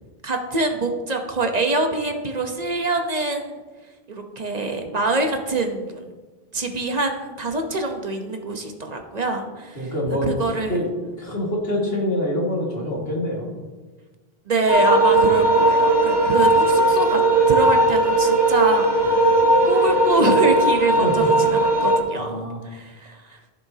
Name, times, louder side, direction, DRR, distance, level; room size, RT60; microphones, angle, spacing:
voice 1, 0.2-3.6 4.1-6.1 6.5-10.8 14.5-17.2 17.5-19.3 19.7-23.4, right 2 dB, 45° right, 4 dB, 1.1 m, -25 dB
voice 2, 9.8-10.3 10.7-13.5 19.0-19.3 21.0-21.3 22.2-22.6, left 1 dB, 80° left, -2 dB, 2.3 m, -26 dB
sound 1, 14.7-22.0, right 2 dB, 25° right, 1.3 m, -17 dB
14.5 x 6.8 x 2.8 m, 1.3 s
omnidirectional pair, 1.0 m